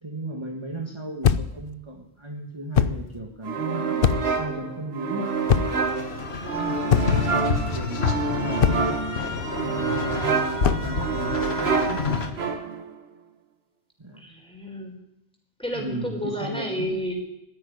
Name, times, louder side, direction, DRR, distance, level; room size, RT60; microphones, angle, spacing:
voice 1, 0.0-5.3 6.5-9.0 9.6-12.0 14.0-14.3 15.7-17.0, right 2 dB, 25° right, 0 dB, 1.7 m, -35 dB
sound 1, 1.2-1.6 2.7-3.1 4.0-4.4 5.5-5.9 6.9-7.3 8.6-9.0 10.6-10.9, left 8 dB, 65° left, 0.9 m, -22 dB
sound 2, 3.4-12.9, right 4 dB, 85° right, 1.6 m, -28 dB
sound 3, 5.3-12.3, left 4 dB, 80° left, 1.7 m, -29 dB
voice 2, 14.2-14.9 15.6-17.1, equal, 5° left, 1 dB, 4.5 m, -31 dB
13.5 x 10.5 x 10.0 m, 0.83 s
omnidirectional pair, 1.0 m